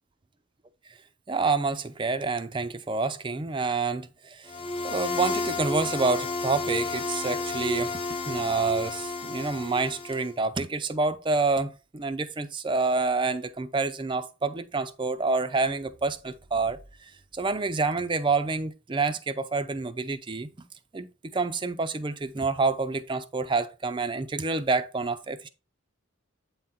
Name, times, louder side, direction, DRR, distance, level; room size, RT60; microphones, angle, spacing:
voice 1, 1.3-4.5 4.8-8.0 8.3-16.8 17.3-20.5 20.9-21.1 21.3-25.5, right 3 dB, 25° right, 0.4 m, -28 dB
sound 1, 4.5-10.3, left 3 dB, 25° left, 0.7 m, -31 dB
8.4 x 3.6 x 4.2 m
head